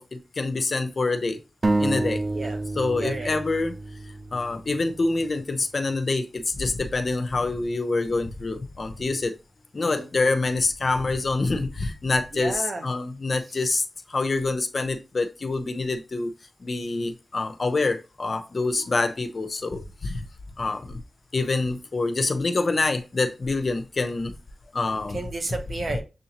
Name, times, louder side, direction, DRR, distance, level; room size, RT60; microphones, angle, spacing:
voice 1, 0.0-1.4 1.8-2.2 2.8-3.8 4.3-9.3 9.7-13.8 14.1-16.3 16.6-20.2 20.6-21.0 21.3-24.3 24.7-25.2, left 3 dB, 55° left, 0.6 m, -26 dB
sound 1, 1.6-5.2, right 2 dB, 45° right, 0.5 m, -28 dB
voice 2, 2.3-2.6 3.0-3.4 9.8-10.1 12.3-12.9 13.5-13.6 25.1-26.0, right 2 dB, 60° right, 1.1 m, -32 dB
7.0 x 2.6 x 2.9 m
cardioid pair, 50°, 0 cm